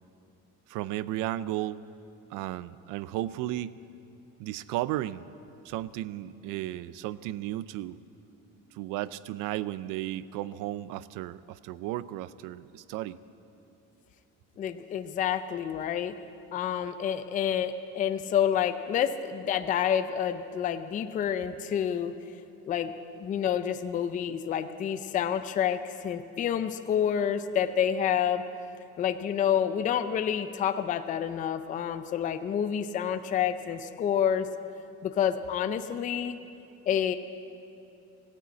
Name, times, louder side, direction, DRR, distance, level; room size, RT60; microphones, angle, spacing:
voice 1, 0.7-1.8 2.3-3.7 4.4-5.3 5.6-8.0 8.7-13.2, right 14 dB, 90° right, 17 dB, 0.5 m, -34 dB
voice 2, 14.6-16.2 16.5-22.1 22.7-28.4 29.0-34.5 35.0-36.4 36.9-37.2, left 9 dB, 25° left, 10 dB, 0.4 m, -28 dB
15.5 x 9.8 x 8.3 m, 2.7 s
cardioid pair, 175°, 31 cm